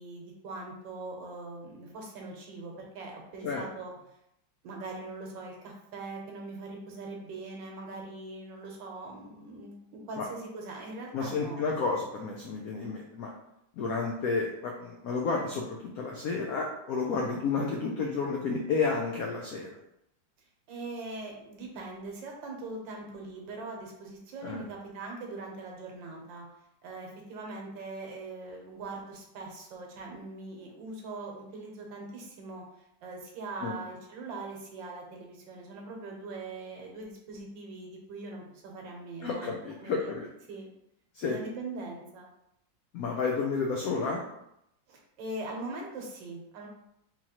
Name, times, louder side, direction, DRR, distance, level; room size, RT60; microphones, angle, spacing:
voice 1, 0.0-3.9 4.6-11.6 20.7-26.5 26.8-32.6 33.0-39.5 39.8-40.1 40.5-40.7 41.2-42.3 44.9-46.7, right 2 dB, 75° right, 0 dB, 1.4 m, -41 dB
voice 2, 11.1-13.3 13.8-19.7 24.4-24.6 33.6-33.8 39.2-40.3 41.1-41.4 42.9-44.2, left 4 dB, 85° left, 0 dB, 0.7 m, -31 dB
3.8 x 2.9 x 2.8 m, 0.81 s
omnidirectional pair, 2.1 m